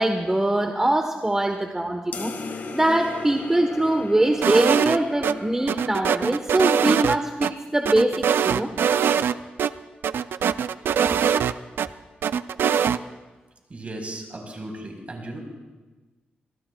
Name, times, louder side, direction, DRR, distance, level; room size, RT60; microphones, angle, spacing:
voice 1, 0.0-2.3 2.7-8.7, right 1 dB, 15° right, 4 dB, 1.1 m, -22 dB
sound 1, 2.1-7.0, left 3 dB, 60° left, 1.6 m, -38 dB
sound 2, 4.4-5.3 5.7-7.5 7.9-9.3 9.6-9.7 10.0-11.9 12.2-13.0, right 8 dB, 80° right, 0.4 m, -22 dB
voice 2, 13.7-15.4, right 1 dB, 40° right, 2 dB, 4.1 m, -36 dB
26.0 x 18.5 x 2.3 m, 1.2 s
cardioid pair, 80°, 4 cm